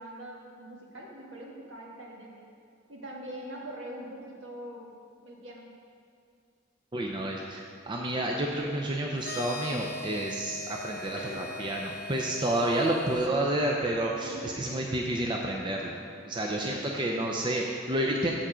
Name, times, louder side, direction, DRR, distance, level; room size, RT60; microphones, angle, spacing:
voice 1, 0.0-2.5 2.9-4.9 5.2-5.7 11.1-11.5 14.2-14.5 16.6-17.1 18.2-18.3, right 1 dB, 65° right, -2 dB, 1.5 m, -43 dB
voice 2, 6.9-16.0 16.2-18.3, right 1 dB, 25° right, -1 dB, 0.5 m, -30 dB
sound 1, 9.2-13.3, left 2 dB, 55° left, 0.7 m, -40 dB
7.3 x 7.0 x 5.0 m, 2.4 s
head